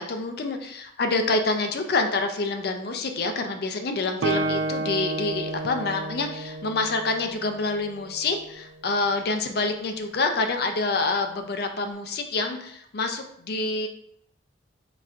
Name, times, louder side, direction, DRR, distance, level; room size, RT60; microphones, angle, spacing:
voice 1, 0.0-13.9, left 3 dB, 55° left, 6 dB, 0.5 m, -27 dB
Guitar, 4.2-7.9, right 2 dB, 85° right, 0.5 m, -30 dB
4.0 x 2.4 x 4.3 m, 0.72 s
head